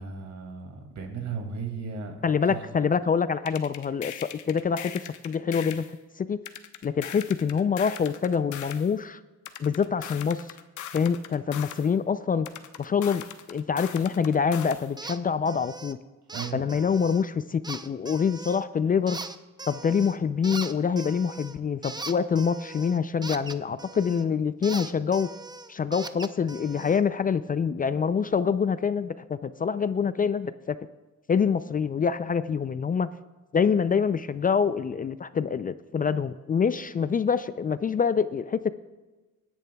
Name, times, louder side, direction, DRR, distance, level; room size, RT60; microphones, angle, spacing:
voice 1, 0.0-2.2 2.5-2.6 16.3-16.7, right 5 dB, 65° right, 3 dB, 2.3 m, -35 dB
voice 2, 2.2-5.8 6.2-6.4 6.8-9.2 9.6-10.6 10.9-12.5 12.8-13.2 13.5-16.0 16.5-19.2 19.7-25.3 25.7-30.8 31.3-33.1 33.5-38.7, left 6 dB, 30° left, 14 dB, 0.4 m, -26 dB
sound 1, 3.5-5.9 6.5-8.9 9.5-11.9 12.4-14.9, left 10 dB, 75° left, 0.9 m, -40 dB
sound 2, 15.0-15.2 15.5-15.9 16.3-17.2 17.6-18.6 19.1-20.2 20.4-24.3 24.6-27.0, right 3 dB, 15° right, 0.6 m, -40 dB
22.5 x 10.5 x 2.3 m, 1.2 s
cardioid pair, 90°, 30 cm